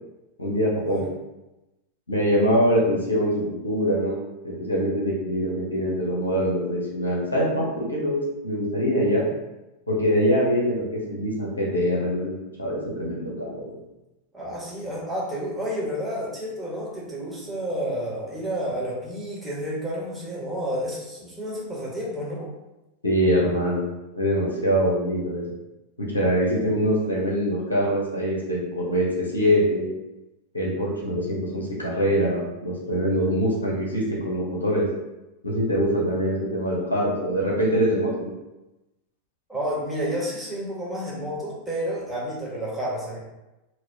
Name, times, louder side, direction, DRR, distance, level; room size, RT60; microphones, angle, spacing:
voice 1, 0.4-1.0 2.1-3.3 3.6-4.2 4.4-9.3 9.9-13.7 23.0-23.9 24.2-25.5 26.0-29.9 30.5-34.9 35.4-38.3, equal, 80° left, -3 dB, 0.9 m, -24 dB
voice 2, 14.3-22.5 39.5-43.2, equal, 5° right, -7 dB, 1.3 m, -30 dB
4.1 x 2.2 x 2.8 m, 0.99 s
figure-of-eight pair, 90°, 0 cm